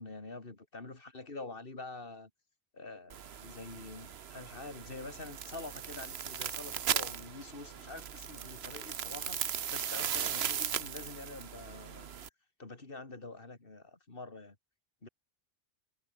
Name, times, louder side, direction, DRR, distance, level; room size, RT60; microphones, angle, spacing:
voice 1, 0.0-2.3 2.7-12.2 12.6-14.6 15.0-15.1, left 3 dB, 60° left, 3.0 m, -46 dB
sound 1, 3.1-12.3, right 8 dB, 75° right, 1.2 m, -38 dB
omnidirectional pair, 1.1 m